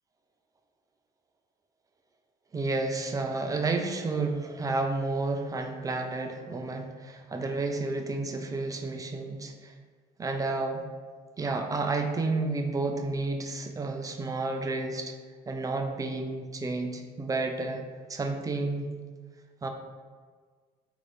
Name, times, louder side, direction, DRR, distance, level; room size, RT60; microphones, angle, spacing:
voice 1, 2.5-9.7 10.2-10.8 11.4-15.1 15.5-17.8 18.1-18.9 19.6-19.7, right 3 dB, 20° right, 4 dB, 0.3 m, -31 dB
3.0 x 2.5 x 3.5 m, 1.5 s
cardioid pair, 110°, 17 cm